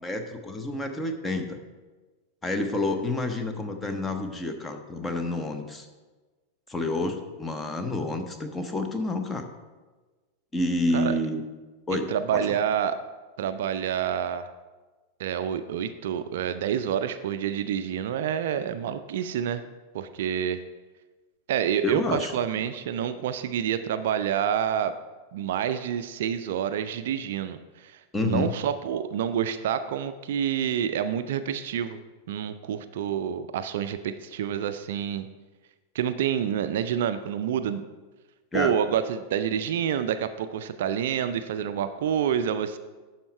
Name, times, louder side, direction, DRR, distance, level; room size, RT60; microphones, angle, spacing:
voice 1, 0.0-1.6 2.4-5.9 6.7-9.5 10.5-11.4 11.9-12.5 21.8-22.3 28.1-28.5 38.5-38.8, left 2 dB, 15° left, 6 dB, 0.8 m, -29 dB
voice 2, 12.1-13.0 13.4-14.5 15.2-19.6 19.9-20.6 21.5-24.9 25.3-32.0 32.3-35.3 35.9-37.8 38.5-42.8, right 9 dB, 55° right, 11 dB, 0.4 m, -28 dB
11.5 x 4.3 x 4.5 m, 1.3 s
figure-of-eight pair, 90°, 0 cm